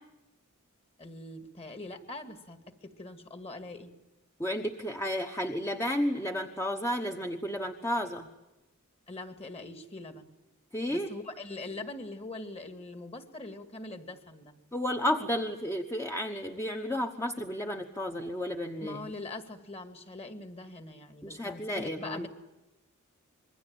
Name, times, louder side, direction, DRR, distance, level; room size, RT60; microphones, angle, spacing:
voice 1, 1.0-3.9 9.1-10.3 10.9-14.5 18.8-22.3, left 2 dB, 30° left, 8 dB, 2.1 m, -42 dB
voice 2, 4.4-8.3 10.7-11.1 14.7-19.1 21.2-22.3, equal, 10° left, 4 dB, 1.1 m, -32 dB
26.5 x 22.5 x 8.8 m, 1.0 s
head